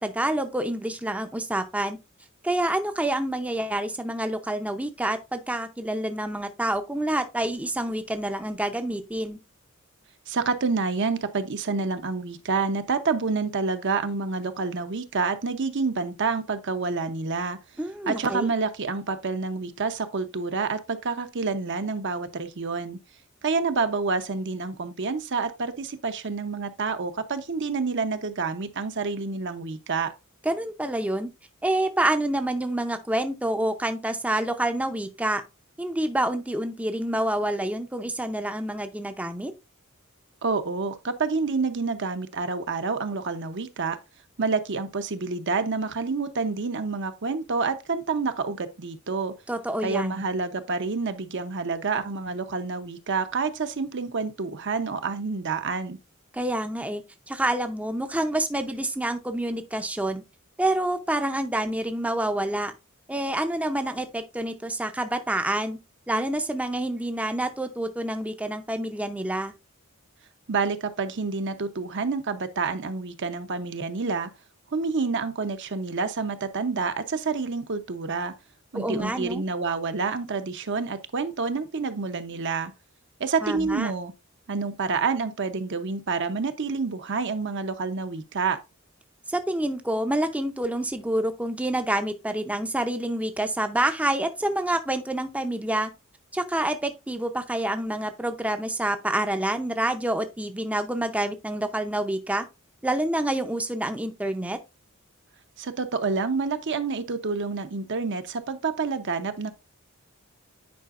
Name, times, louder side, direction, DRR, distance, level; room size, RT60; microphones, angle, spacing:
voice 1, 0.0-2.0 2.4-9.4 17.8-18.5 30.4-31.3 31.6-35.4 35.8-39.5 49.5-50.2 56.3-60.2 60.6-62.7 63.1-65.8 66.1-69.5 78.7-79.4 83.4-83.9 89.3-95.9 96.3-102.4 102.8-104.6, right 1 dB, 5° right, 0.6 m, -27 dB
voice 2, 10.3-17.6 18.1-23.0 23.4-30.1 40.4-44.0 44.4-49.3 49.8-56.0 70.5-74.3 74.7-78.3 78.7-82.7 83.2-84.1 84.5-88.6 105.6-109.5, right 4 dB, 60° right, 0.8 m, -28 dB
9.5 x 4.9 x 2.4 m
head